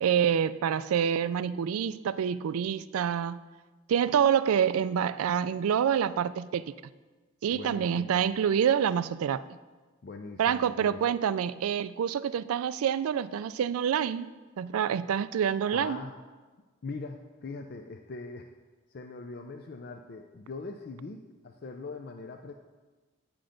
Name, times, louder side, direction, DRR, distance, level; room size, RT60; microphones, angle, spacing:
voice 1, 0.0-3.4 3.9-6.7 7.4-9.4 10.4-14.3 14.6-16.0, right 8 dB, 85° right, 16 dB, 0.3 m, -27 dB
voice 2, 7.5-8.2 10.0-11.1 15.7-16.1 16.8-18.5 18.9-22.5, left 3 dB, 45° left, 5 dB, 0.4 m, -41 dB
8.6 x 6.0 x 5.1 m, 1.3 s
head